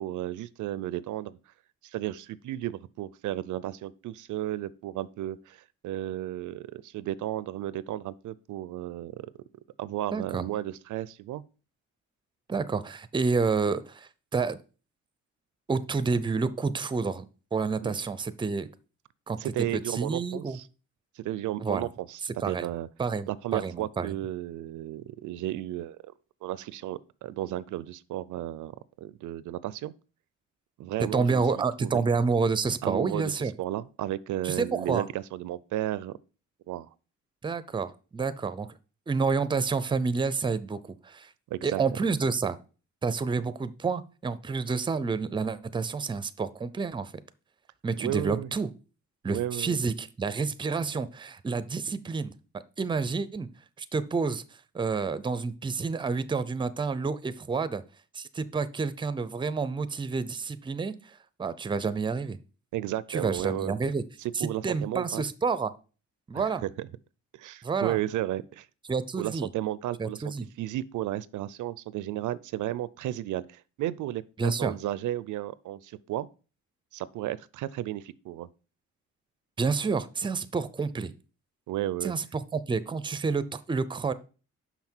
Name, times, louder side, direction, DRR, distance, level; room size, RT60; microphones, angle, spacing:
voice 1, 0.0-1.4 1.8-9.3 9.8-11.4 17.8-17.9 19.4-20.6 21.2-22.9 23.3-26.0 26.4-28.7 29.0-29.9 30.8-32.0 32.8-36.1 36.7-36.9 41.5-41.8 48.0-48.5 49.3-49.8 62.7-63.8 64.4-65.2 66.3-66.9 67.3-68.7 69.2-70.2 70.6-76.3 76.9-78.5 81.7-82.1, right 13 dB, 80° right, 0.5 m, -33 dB
voice 2, 10.1-10.5 12.5-14.6 15.7-17.2 17.5-18.7 19.3-20.6 21.6-21.9 22.4-22.7 23.0-24.2 31.0-33.5 34.4-35.0 37.4-38.7 39.1-41.3 41.6-42.6 43.0-47.1 47.8-48.7 49.2-52.3 52.8-53.5 53.8-54.4 54.7-57.8 58.1-62.4 63.1-64.0 64.3-65.7 66.3-66.6 67.6-68.0 68.9-69.5 70.0-70.5 74.4-74.7 79.6-81.1 82.0-84.1, right 4 dB, 15° right, 0.5 m, -29 dB
5.9 x 5.7 x 4.4 m
cardioid pair, 110°, 30 cm